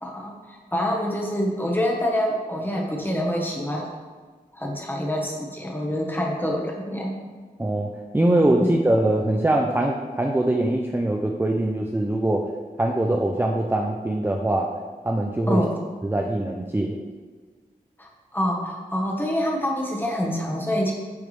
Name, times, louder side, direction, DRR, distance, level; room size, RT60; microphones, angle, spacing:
voice 1, 0.0-3.9 4.5-7.2 8.6-8.7 15.5-15.8 18.0-20.9, equal, 15° left, -1 dB, 1.2 m, -26 dB
voice 2, 7.6-12.5 12.8-14.7 15.0-15.6 16.0-17.0, right 1 dB, 15° right, 1 dB, 0.4 m, -22 dB
8.8 x 3.4 x 3.3 m, 1.5 s
wide cardioid pair, 55°, 16 cm